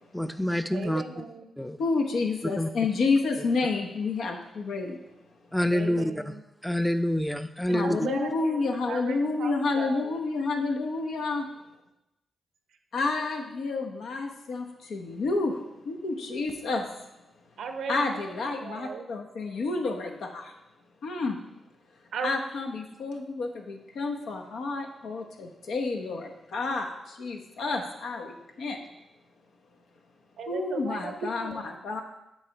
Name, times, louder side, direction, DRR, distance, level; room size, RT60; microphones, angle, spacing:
voice 1, 0.1-1.0 1.6-1.8 2.6-2.7 5.5-6.1 6.6-8.0, left 1 dB, 5° left, 10 dB, 0.5 m, -26 dB
voice 2, 0.7-1.5 5.7-6.4 7.7-8.6 8.9-10.2 17.6-19.1 22.1-22.4 30.4-31.6, right 5 dB, 80° right, 7 dB, 0.7 m, -37 dB
voice 3, 1.8-5.0 7.7-11.5 12.9-16.9 17.9-20.5 21.0-21.4 22.2-28.8 30.5-32.0, left 3 dB, 80° left, 2 dB, 1.0 m, -30 dB
8.1 x 3.3 x 5.9 m, 0.91 s
cardioid pair, 60°, 0 cm